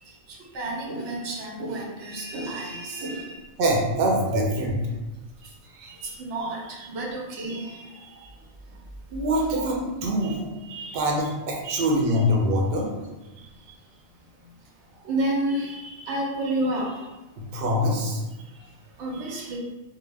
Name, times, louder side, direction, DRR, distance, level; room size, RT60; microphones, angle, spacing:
voice 1, 0.0-3.4 5.4-8.3 10.2-10.3 10.6-11.0 11.6-11.8 12.1-12.2 13.4-13.7 15.0-17.1 18.5-18.7 19.0-19.6, right 1 dB, 90° right, -2 dB, 0.9 m, -31 dB
voice 2, 3.6-4.7 9.1-10.4 10.9-12.9 17.4-18.2, equal, 60° right, -1 dB, 0.7 m, -24 dB
2.1 x 2.0 x 3.2 m, 1.1 s
omnidirectional pair, 1.2 m